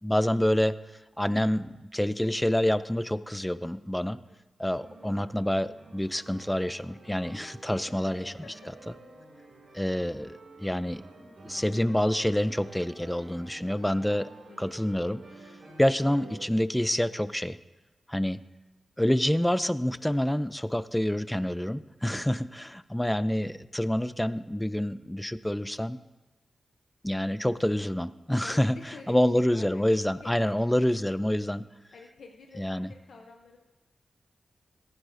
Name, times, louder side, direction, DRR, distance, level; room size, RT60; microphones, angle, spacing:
voice 1, 0.0-0.8 1.2-4.2 4.6-8.3 9.7-14.3 14.6-15.2 15.8-17.6 18.1-18.4 19.0-26.0 27.0-28.8 29.1-31.6 32.6-32.9, left 1 dB, 10° left, 15 dB, 0.4 m, -27 dB
sound 1, 4.6-16.4, right 2 dB, 70° right, 2.9 m, -49 dB
voice 2, 8.1-8.7 9.3-9.4 14.5-14.7 15.6-15.7 22.2-22.5 28.4-30.7 31.9-33.6, left 4 dB, 75° left, 2 dB, 0.7 m, -50 dB
14.5 x 9.7 x 2.7 m, 1.1 s
cardioid pair, 55°, 0 cm